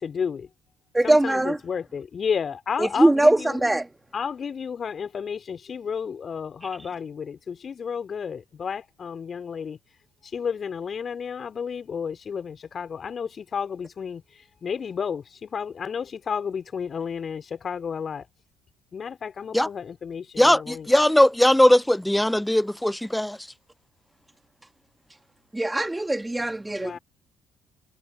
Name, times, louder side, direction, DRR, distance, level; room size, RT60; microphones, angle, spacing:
voice 1, 0.0-0.5 1.0-3.6 4.1-9.8 10.3-14.2 14.6-18.3 18.9-20.9 26.8-27.0, left 6 dB, 45° left, 3.8 m, -32 dB
voice 2, 0.9-1.6 2.8-3.9 25.5-27.0, right 1 dB, 10° right, 2.2 m, -21 dB
voice 3, 20.4-23.4, left 1 dB, 5° left, 0.7 m, -19 dB
hypercardioid pair, 50°, 0 cm